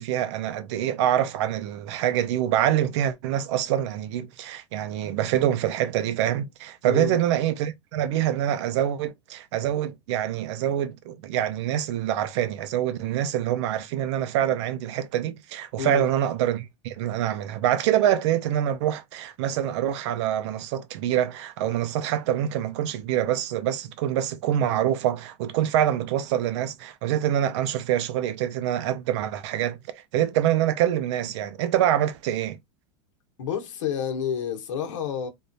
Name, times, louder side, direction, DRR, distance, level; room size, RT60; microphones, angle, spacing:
voice 1, 0.0-32.6, right 11 dB, 65° right, 0.6 m, -25 dB
voice 2, 6.8-7.2 15.8-16.1 33.4-35.3, left 8 dB, 80° left, 1.1 m, -29 dB
3.5 x 2.4 x 2.7 m
supercardioid pair, 140°, 16 cm